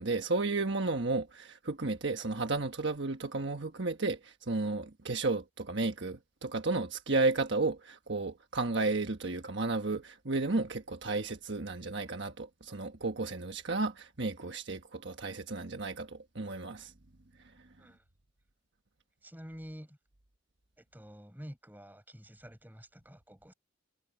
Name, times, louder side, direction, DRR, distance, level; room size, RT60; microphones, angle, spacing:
voice 1, 0.0-16.9, right 3 dB, 55° right, 1.4 m, -33 dB
voice 2, 19.2-20.0 20.8-23.5, equal, 10° right, 5.4 m, -49 dB
head